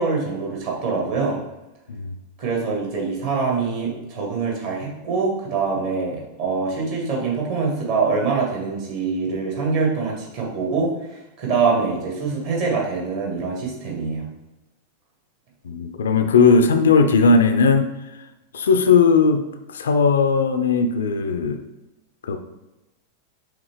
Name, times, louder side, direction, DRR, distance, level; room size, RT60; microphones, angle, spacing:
voice 1, 0.0-1.4 2.4-14.2, right 4 dB, 50° right, -2 dB, 1.6 m, -24 dB
voice 2, 15.6-17.9 18.5-19.4 19.7-21.6 22.2-22.4, left 4 dB, 65° left, 8 dB, 0.4 m, -17 dB
4.9 x 3.4 x 3.1 m, 0.99 s
figure-of-eight pair, 90°, 0 cm